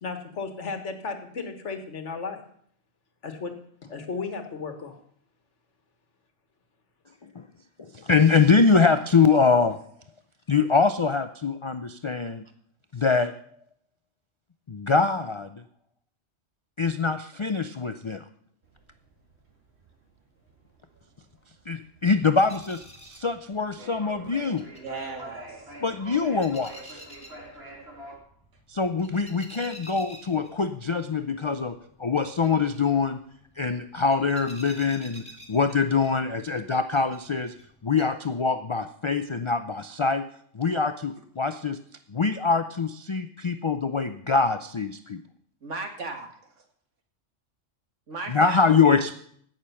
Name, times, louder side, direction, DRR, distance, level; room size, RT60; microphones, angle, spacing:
voice 1, 0.0-2.4 3.2-3.5 3.9-5.0 10.5-10.6, left 4 dB, 75° left, 6 dB, 1.8 m, -34 dB
voice 2, 7.8-9.8 10.5-12.5 12.9-13.3 14.7-15.6 16.8-18.2 21.7-24.6 25.8-27.0 28.7-33.2 33.6-37.5 37.8-40.3 40.5-41.8 42.1-45.2 48.3-49.1, left 4 dB, 45° left, 9 dB, 0.3 m, -24 dB
sound 1, 18.6-28.2, right 1 dB, 60° right, 2.8 m, -45 dB
sound 2, 22.2-38.0, equal, 5° left, 1.8 m, -51 dB
voice 3, 24.8-25.7 45.6-46.5 48.1-48.6, right 3 dB, 80° right, 3 dB, 2.1 m, -36 dB
16.5 x 6.7 x 5.7 m, 0.63 s
omnidirectional pair, 1.2 m